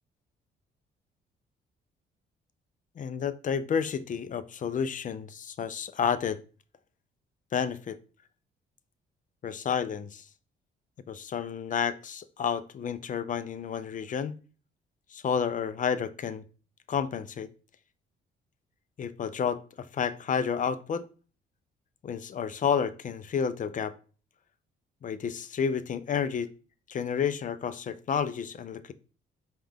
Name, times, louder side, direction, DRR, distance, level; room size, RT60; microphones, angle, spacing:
voice 1, 3.0-6.4 7.5-8.0 9.4-10.2 11.1-14.4 15.1-16.4 16.9-17.5 19.0-21.0 22.0-23.9 25.0-26.5 26.9-28.9, left 7 dB, 40° left, 13 dB, 0.4 m, -30 dB
5.3 x 2.4 x 3.6 m, 0.37 s
cardioid pair, 90°, 20 cm